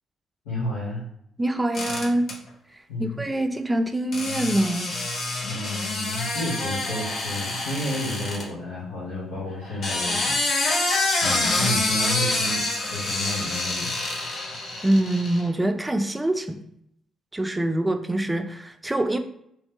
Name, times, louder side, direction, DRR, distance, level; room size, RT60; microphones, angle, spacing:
voice 1, 0.4-1.0 2.9-3.2 5.5-10.9 11.2-12.6 12.9-13.9, left 1 dB, 85° left, -12 dB, 1.4 m, -31 dB
voice 2, 1.4-2.3 3.0-4.9 14.8-16.6 17.3-19.2, right 1 dB, 15° right, 7 dB, 0.5 m, -24 dB
sound 1, 1.7-2.3 4.1-8.4 9.6-15.5, left 2 dB, 65° left, 0.9 m, -27 dB
3.1 x 3.1 x 3.0 m, 0.73 s
hypercardioid pair, 45°, 0 cm